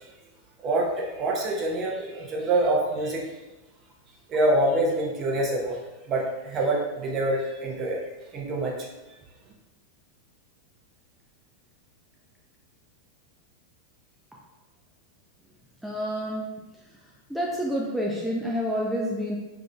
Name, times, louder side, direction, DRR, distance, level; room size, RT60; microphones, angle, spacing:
voice 1, 0.6-3.2 4.3-5.8 6.1-8.0 8.3-8.9, right 1 dB, 30° right, -2 dB, 0.8 m, -25 dB
voice 2, 15.8-16.6 17.3-19.4, equal, ahead, -4 dB, 0.4 m, -28 dB
3.7 x 3.6 x 2.2 m, 1.1 s
figure-of-eight pair, 90°, 0 cm